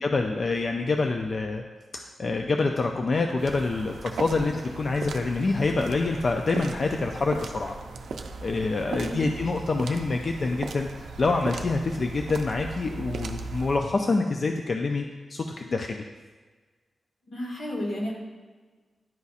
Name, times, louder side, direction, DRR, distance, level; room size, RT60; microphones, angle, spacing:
voice 1, 0.0-1.6 1.9-7.7 8.4-15.0 15.3-16.0, left 3 dB, 45° left, 3 dB, 0.3 m, -26 dB
sound 1, 3.4-13.8, right 3 dB, 90° right, 0.4 m, -38 dB
voice 2, 8.9-9.2 17.3-18.1, equal, 85° left, -3 dB, 1.7 m, -32 dB
10.5 x 4.0 x 2.4 m, 1.3 s
wide cardioid pair, 120°, 0 cm